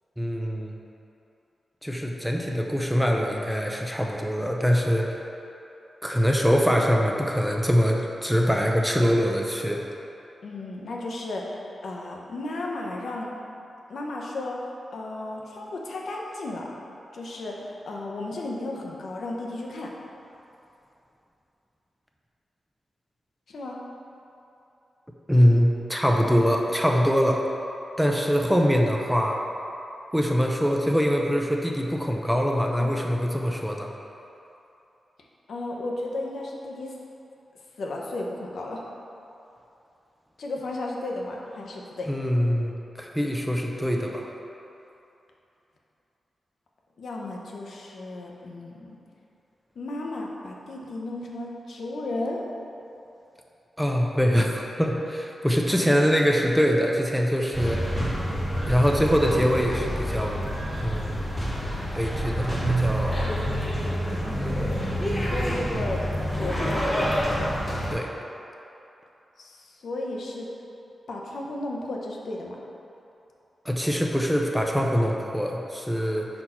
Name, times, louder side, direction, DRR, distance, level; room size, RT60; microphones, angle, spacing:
voice 1, 0.2-0.8 1.8-5.1 6.0-9.8 25.3-27.4 28.0-29.4 30.1-33.9 42.1-44.3 53.8-57.8 58.7-60.3 60.8-61.2 61.9-63.2 67.9-68.1 73.7-76.3, equal, ahead, 0 dB, 0.4 m, -23 dB
voice 2, 10.4-11.5 11.8-13.3 13.9-14.6 14.9-16.7 17.1-19.9 23.5-23.8 32.8-32.9 35.5-36.9 37.8-38.8 40.4-42.1 47.0-49.0 49.8-52.4 55.7-55.8 65.3-66.0 66.3-67.5 69.4-70.5 71.1-72.6, left 2 dB, 70° left, -1 dB, 0.7 m, -34 dB
sound 1, 57.5-67.9, equal, 20° left, 1.2 m, -27 dB
5.5 x 4.4 x 4.3 m, 2.8 s
wide cardioid pair, 135°, 0 cm